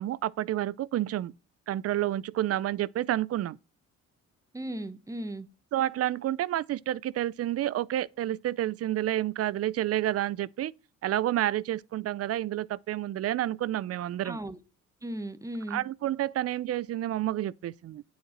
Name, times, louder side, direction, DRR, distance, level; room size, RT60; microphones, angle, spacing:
voice 1, 0.0-1.3 1.7-3.6 5.7-10.7 11.0-14.4 15.7-18.0, right 13 dB, 55° right, 0.4 m, -29 dB
voice 2, 4.5-5.5 14.2-14.6 15.0-15.8, right 1 dB, 10° right, 1.0 m, -36 dB
9.0 x 5.1 x 5.9 m
cardioid pair, 90°, 30 cm